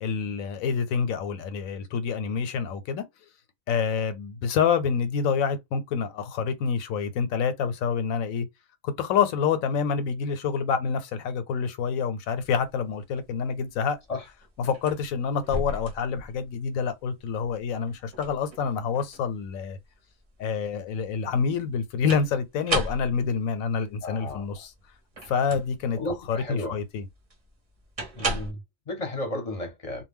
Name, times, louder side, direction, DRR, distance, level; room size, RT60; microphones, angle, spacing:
voice 1, 0.0-3.0 3.7-8.5 8.8-14.0 14.6-19.8 20.4-24.7 25.3-26.0 26.3-27.0, left 6 dB, 85° left, 1.0 m, -27 dB
sound 1, 12.3-28.5, right 2 dB, 35° right, 0.6 m, -36 dB
voice 2, 24.0-24.4 26.0-26.8 28.2-30.0, left 1 dB, 35° left, 0.7 m, -33 dB
2.2 x 2.1 x 3.4 m
omnidirectional pair, 1.4 m